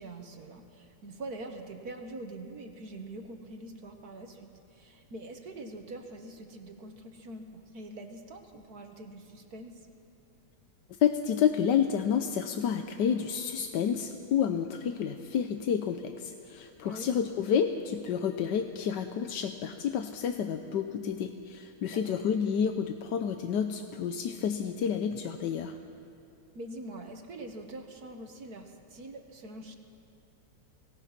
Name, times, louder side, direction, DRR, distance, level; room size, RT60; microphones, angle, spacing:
voice 1, 0.0-9.7 16.8-17.1 21.9-22.2 26.5-29.8, right 2 dB, 50° right, 4 dB, 1.7 m, -44 dB
voice 2, 11.0-25.7, left 8 dB, 65° left, 7 dB, 1.2 m, -29 dB
25.5 x 18.0 x 5.9 m, 2.8 s
omnidirectional pair, 2.3 m